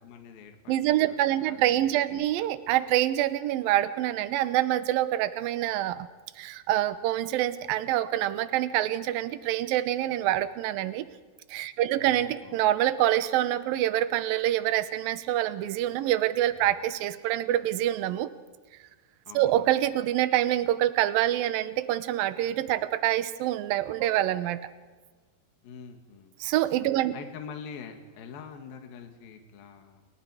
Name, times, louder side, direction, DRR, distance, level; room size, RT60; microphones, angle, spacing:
voice 1, 0.0-2.5 12.0-12.6 19.3-19.7 25.6-26.3 27.1-30.0, left 6 dB, 60° left, 4 dB, 3.4 m, -45 dB
voice 2, 0.7-6.1 6.4-11.1 11.5-18.3 19.3-24.6 26.4-27.1, right 13 dB, 70° right, 12 dB, 2.4 m, -26 dB
28.5 x 27.5 x 5.0 m, 1.4 s
omnidirectional pair, 5.0 m